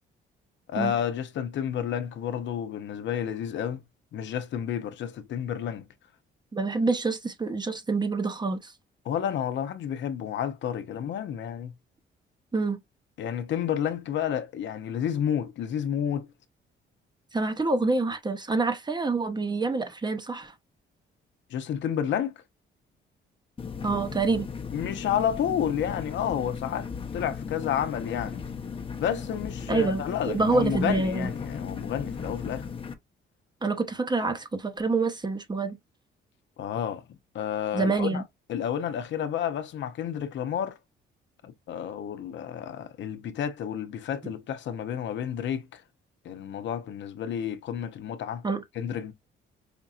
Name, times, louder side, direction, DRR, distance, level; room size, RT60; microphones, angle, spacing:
voice 1, 0.7-3.8 4.1-5.9 9.0-11.7 13.2-16.3 21.5-22.4 24.7-28.4 29.0-32.7 36.6-37.0 37.3-38.2 38.5-40.8 41.4-45.8 46.2-48.4 48.8-49.1, left 9 dB, 70° left, 0.7 m, -30 dB
voice 2, 6.5-8.7 12.5-12.8 17.3-20.5 23.8-24.5 29.7-31.3 33.6-35.8 37.7-38.2 44.2-44.3 48.4-48.6, right 3 dB, 20° right, 0.8 m, -27 dB
sound 1, 23.6-32.9, left 6 dB, 25° left, 0.8 m, -36 dB
5.2 x 2.6 x 2.4 m
cardioid pair, 90°, 20 cm